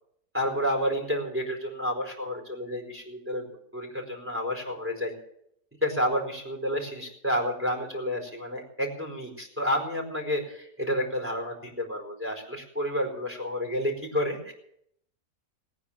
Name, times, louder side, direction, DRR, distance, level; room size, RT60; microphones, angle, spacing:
voice 1, 0.3-3.5 3.7-5.1 5.8-14.5, equal, 10° right, 1 dB, 4.5 m, -30 dB
20.0 x 9.5 x 7.4 m, 0.73 s
omnidirectional pair, 1.7 m